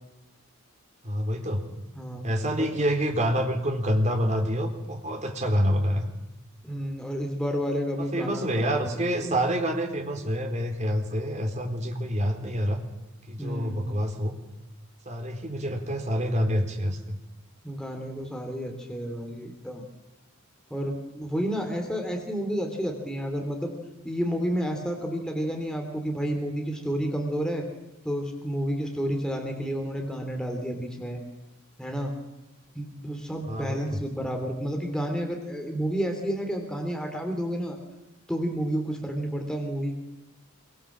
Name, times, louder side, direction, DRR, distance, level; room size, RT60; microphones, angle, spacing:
voice 1, 1.0-1.7 2.2-6.1 8.0-12.8 13.3-14.3 15.1-17.2 33.5-34.0, equal, 35° right, 4 dB, 4.0 m, -27 dB
voice 2, 6.6-9.3 13.4-13.8 17.6-19.8 20.7-23.7 24.0-27.7 28.0-31.2 31.8-32.1 32.7-37.8 38.3-39.9, equal, 5° left, 3 dB, 3.1 m, -30 dB
26.5 x 24.0 x 7.4 m, 0.93 s
head